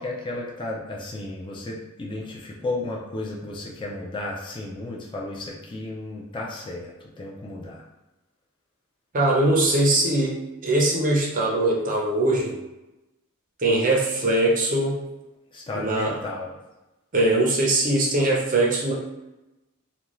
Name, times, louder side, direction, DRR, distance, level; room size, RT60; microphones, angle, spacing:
voice 1, 0.0-7.8 15.5-16.6, left 2 dB, 20° left, -3 dB, 0.4 m, -33 dB
voice 2, 9.1-12.6 13.6-15.0 15.7-16.1 17.1-18.9, right 2 dB, 35° right, -2 dB, 0.6 m, -21 dB
2.5 x 2.3 x 3.0 m, 1.0 s
head